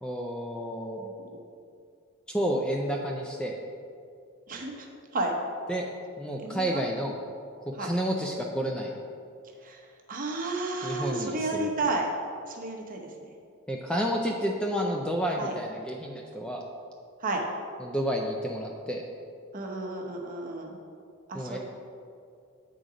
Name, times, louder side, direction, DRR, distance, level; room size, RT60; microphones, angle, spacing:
voice 1, 0.0-1.0 2.3-3.6 5.7-5.9 6.2-7.2 7.6-8.9 10.8-11.7 13.7-16.6 17.8-19.0 21.3-21.6, equal, 5° left, 0 dB, 0.4 m, -30 dB
voice 2, 4.5-4.9 5.1-5.3 6.4-6.8 7.8-7.9 9.6-12.1 12.5-13.3 15.4-15.5 17.2-17.4 19.5-20.8 21.3-21.6, right 2 dB, 40° right, 1 dB, 0.8 m, -32 dB
8.0 x 3.8 x 4.9 m, 2.3 s
head